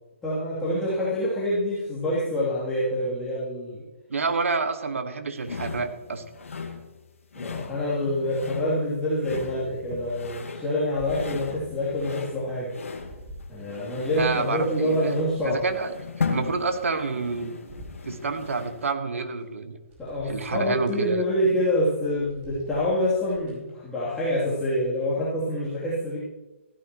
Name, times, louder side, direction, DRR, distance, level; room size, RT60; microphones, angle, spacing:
voice 1, 0.2-3.8 7.3-12.8 13.5-15.6 20.0-26.2, left 1 dB, 10° left, -9 dB, 3.0 m, -26 dB
voice 2, 4.1-6.2 14.2-15.1 15.4-15.9 16.3-17.5 18.0-19.8 20.3-21.2, right 4 dB, 80° right, 8 dB, 1.5 m, -28 dB
sound 1, 5.4-18.9, left 5 dB, 80° left, 1.7 m, -37 dB
sound 2, 10.9-12.1 12.5-14.2 14.7-17.3 17.6-18.8 19.4-19.5 19.9-21.0 21.5-21.7 22.0-23.7 24.2-24.3, right 1 dB, 20° right, 5.0 m, -47 dB
15.5 x 12.5 x 3.1 m, 1.1 s
hypercardioid pair, 150°, 7 cm